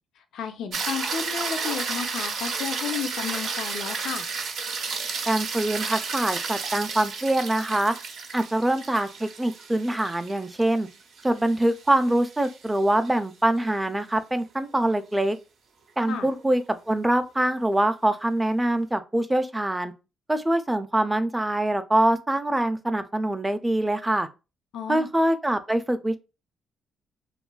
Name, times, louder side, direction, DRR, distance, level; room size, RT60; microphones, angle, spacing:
voice 1, 0.3-4.3 16.1-16.3 24.7-25.1, left 7 dB, 75° left, 0.4 m, -32 dB
sound 1, 0.7-13.1 17.6-17.7, right 5 dB, 70° right, 0.5 m, -32 dB
voice 2, 5.3-7.9 8.3-10.9 11.2-15.4 16.0-19.9 20.3-24.3 24.9-26.2, right 1 dB, 10° right, 0.4 m, -24 dB
2.6 x 2.3 x 2.2 m
cardioid pair, 90°, 0 cm